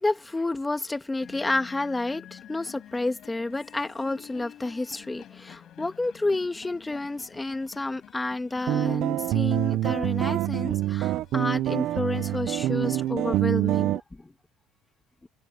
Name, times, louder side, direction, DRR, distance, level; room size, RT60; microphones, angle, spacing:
voice 1, 0.0-14.3, left 2 dB, 10° left, 2.1 m, -30 dB
sound 1, 1.2-13.1, left 11 dB, 55° left, 5.3 m, -49 dB
sound 2, 8.7-14.0, right 14 dB, 65° right, 0.9 m, -26 dB
cardioid pair, 115°, 0 cm